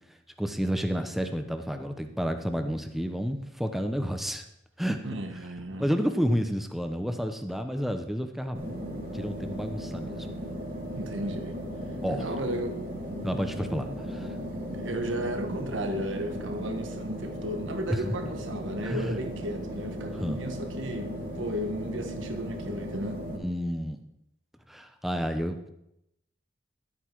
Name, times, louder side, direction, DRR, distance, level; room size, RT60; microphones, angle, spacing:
voice 1, 0.4-4.4 4.8-5.1 5.8-8.6 9.1-10.3 12.0-12.2 13.2-14.3 18.8-19.2 20.2-20.4 23.3-24.0 24.7-25.7, equal, ahead, 6 dB, 0.8 m, -30 dB
voice 2, 5.0-5.9 10.7-11.6 12.1-12.8 14.7-23.2, right 1 dB, 75° right, 6 dB, 1.4 m, -34 dB
sound 1, 8.5-23.4, equal, 45° right, 2.5 m, -36 dB
12.5 x 8.4 x 4.6 m, 0.82 s
head